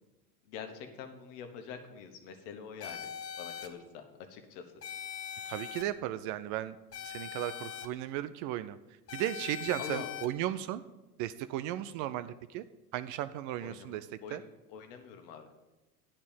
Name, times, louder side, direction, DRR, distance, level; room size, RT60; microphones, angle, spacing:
voice 1, 0.4-3.1 3.4-4.6 9.8-10.1 13.6-14.4 14.7-15.5, left 7 dB, 60° left, 6 dB, 1.4 m, -45 dB
sound 1, 2.8-3.7 4.8-5.8 6.9-7.9 9.1-10.3, left 8 dB, 30° left, 1.0 m, -41 dB
voice 2, 5.5-6.8 7.0-8.8 9.1-10.8 11.2-12.6 12.9-14.4, right 13 dB, 45° right, 12 dB, 0.4 m, -35 dB
10.0 x 4.4 x 7.2 m, 1.1 s
figure-of-eight pair, 70°, 47 cm